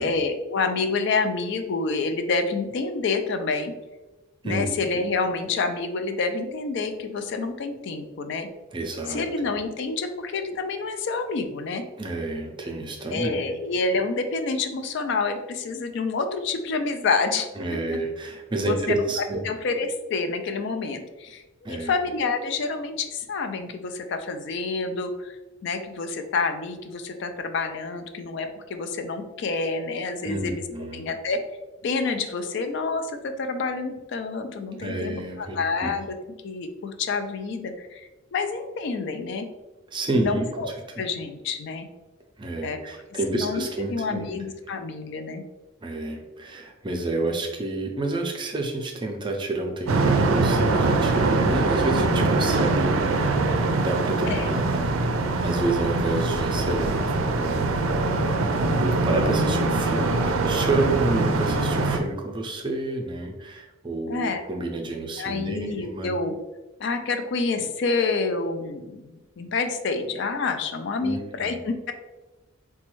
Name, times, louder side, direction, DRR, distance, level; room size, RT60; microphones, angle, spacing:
voice 1, 0.0-3.7 4.4-8.5 9.1-11.8 13.1-17.5 18.6-19.0 19.4-25.4 25.6-30.6 30.9-31.4 31.8-36.1 36.4-39.5 40.1-40.7 41.0-41.9 42.6-42.8 43.3-43.6 43.9-45.4 54.3-54.5 64.1-64.5 65.2-66.3 66.8-71.9, left 4 dB, 60° left, 6 dB, 0.3 m, -28 dB
voice 2, 8.7-9.2 12.0-13.4 17.6-19.5 21.6-21.9 30.2-31.1 34.8-35.9 39.9-40.5 41.0-41.1 42.4-44.4 45.8-53.1 53.8-55.1 55.4-57.7 58.8-66.1 71.0-71.6, right 2 dB, 25° right, 2 dB, 0.4 m, -29 dB
sound 1, 49.9-62.0, right 3 dB, 90° right, 0.4 m, -23 dB
4.1 x 2.2 x 3.0 m, 1.1 s
head